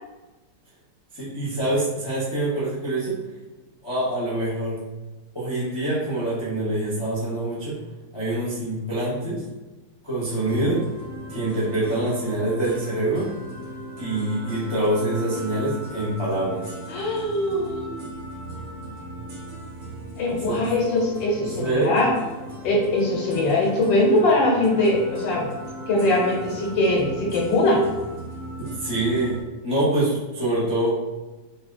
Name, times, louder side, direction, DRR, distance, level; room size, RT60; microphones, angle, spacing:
voice 1, 1.1-3.2 3.8-4.8 5.3-7.8 8.1-9.4 10.0-10.8 11.3-13.3 14.0-16.7 20.5-20.6 21.4-21.9 28.6-30.9, right 1 dB, 25° left, -8 dB, 0.6 m, -25 dB
sound 1, 10.3-29.4, right 1 dB, 70° right, 2.3 m, -38 dB
voice 2, 16.9-18.0 20.2-22.1 22.6-25.5 25.9-27.8, left 1 dB, 85° left, -3 dB, 1.5 m, -21 dB
4.3 x 2.7 x 2.5 m, 1.2 s
omnidirectional pair, 2.0 m